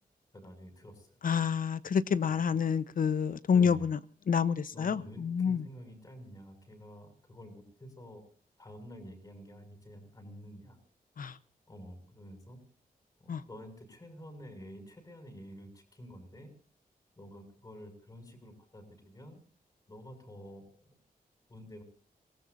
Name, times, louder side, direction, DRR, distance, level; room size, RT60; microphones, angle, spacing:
voice 1, 0.3-1.2 2.5-2.6 3.5-3.8 4.7-8.2 8.6-10.8 11.7-12.6 13.2-16.5 17.2-19.4 19.9-20.9 21.5-21.8, equal, 25° left, 7.1 m, -49 dB
voice 2, 1.2-4.0 4.3-5.6 11.2-11.4 13.3-13.4, left 6 dB, 65° left, 1.0 m, -28 dB
28.0 x 18.5 x 2.7 m
wide cardioid pair, 120°, 16 cm